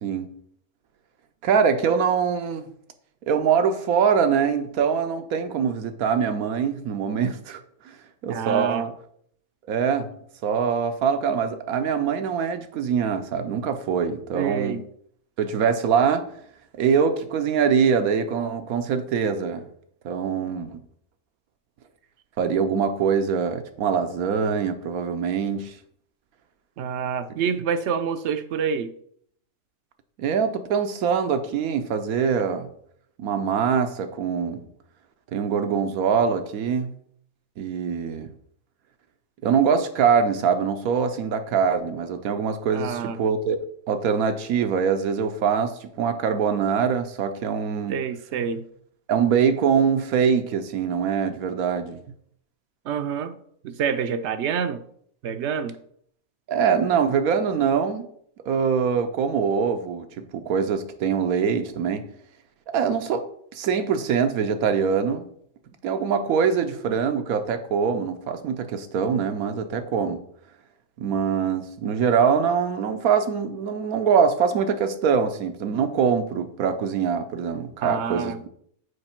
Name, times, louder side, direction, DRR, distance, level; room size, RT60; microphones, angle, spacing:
voice 1, 0.0-0.3 1.4-2.7 3.3-7.6 7.9-8.0 8.2-8.9 9.7-10.1 10.4-14.8 15.4-16.3 16.8-19.6 20.0-20.8 22.4-25.7 30.2-32.7 33.2-34.6 35.3-36.9 37.6-38.3 39.4-43.6 43.9-48.0 49.1-52.0 56.5-58.0 58.5-62.0 62.7-63.2 63.5-65.3 65.8-70.2 71.0-78.5, right 6 dB, 85° right, 8 dB, 1.2 m, -23 dB
voice 2, 8.3-8.9 14.3-14.8 26.8-28.9 42.7-43.2 47.9-48.6 52.8-53.4 53.6-54.8 55.2-55.8 77.8-78.4, right 7 dB, 65° right, 11 dB, 0.7 m, -27 dB
6.6 x 4.8 x 4.4 m, 0.67 s
omnidirectional pair, 1.5 m